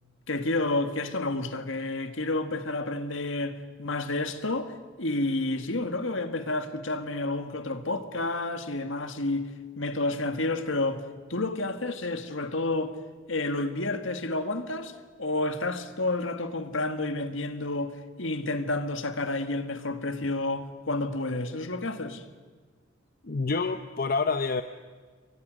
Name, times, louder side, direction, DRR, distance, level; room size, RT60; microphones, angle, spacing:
voice 1, 0.3-9.5 9.8-11.0 11.3-12.9 13.3-22.2, left 2 dB, 65° left, 1.8 m, -30 dB
voice 2, 23.2-24.6, left 4 dB, 45° left, 0.7 m, -27 dB
29.0 x 23.5 x 6.5 m
head